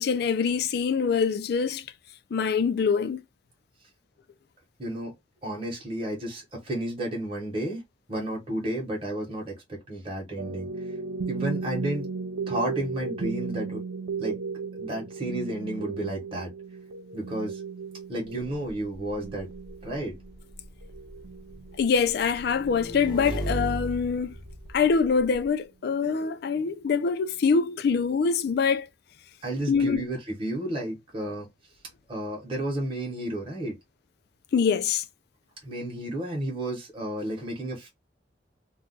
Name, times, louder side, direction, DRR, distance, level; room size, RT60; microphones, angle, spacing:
voice 1, 0.0-1.8 2.3-3.2 21.8-24.3 24.7-28.9 29.7-30.0 34.5-35.0, left 5 dB, 55° left, 0.3 m, -24 dB
voice 2, 4.8-5.1 5.4-7.8 8.1-10.7 11.3-12.1 12.5-13.8 14.2-14.4 14.7-16.5 17.1-17.6 18.1-19.5 19.8-20.1 29.4-31.5 32.1-33.8 35.6-37.9, right 1 dB, 30° right, 0.9 m, -32 dB
sound 1, 10.4-23.8, right 4 dB, 85° right, 0.4 m, -36 dB
Motorcycle / Engine, 18.4-25.4, right 1 dB, 25° left, 0.7 m, -37 dB
2.4 x 2.2 x 3.8 m
head